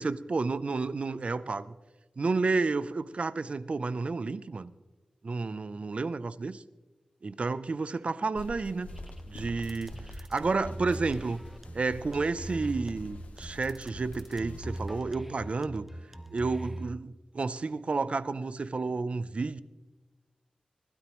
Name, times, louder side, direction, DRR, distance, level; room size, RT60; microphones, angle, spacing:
voice 1, 0.0-1.7 2.2-4.7 5.2-6.6 7.2-8.9 9.3-11.4 11.7-15.9 16.3-19.6, right 3 dB, 55° right, 16 dB, 0.6 m, -31 dB
sound 1, 8.3-15.0, left 1 dB, 85° left, 1.9 m, -47 dB
sound 2, 8.9-16.9, right 1 dB, 10° right, 0.8 m, -42 dB
20.0 x 12.5 x 3.1 m, 1.2 s
cardioid pair, 60°, 2 cm